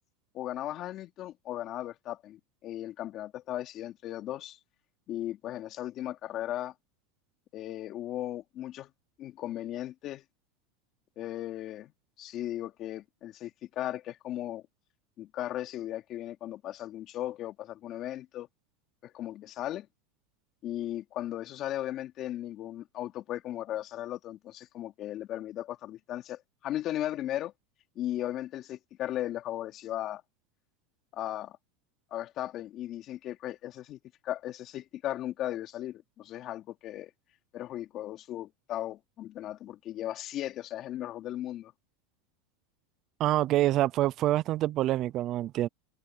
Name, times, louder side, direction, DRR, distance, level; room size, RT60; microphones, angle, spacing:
voice 1, 0.3-4.6 5.1-6.7 7.5-8.9 9.2-10.2 11.2-11.9 12.2-14.6 15.2-18.5 19.0-19.9 20.6-27.5 27.9-30.2 31.1-31.6 32.1-37.1 37.5-41.7, left 13 dB, 40° left, 2.9 m, -37 dB
voice 2, 43.2-45.7, right 14 dB, 40° right, 0.6 m, -26 dB
open air
supercardioid pair, 140°, 0 cm